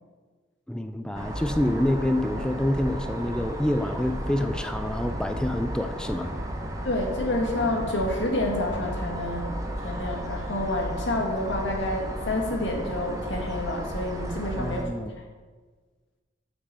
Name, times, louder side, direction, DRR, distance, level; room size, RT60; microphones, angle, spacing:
voice 1, 0.7-6.3 14.6-15.1, left 1 dB, 5° left, 7 dB, 0.3 m, -27 dB
sound 1, 1.1-14.8, right 1 dB, 15° right, 0.8 m, -34 dB
Knock, 5.0-5.8 6.2-7.0 7.5-8.2 8.7-9.4, equal, 80° right, 2.8 m, -40 dB
voice 2, 6.8-9.6 9.8-14.9, left 1 dB, 65° left, 0 dB, 1.7 m, -28 dB
6.3 x 6.1 x 7.4 m, 1.4 s
head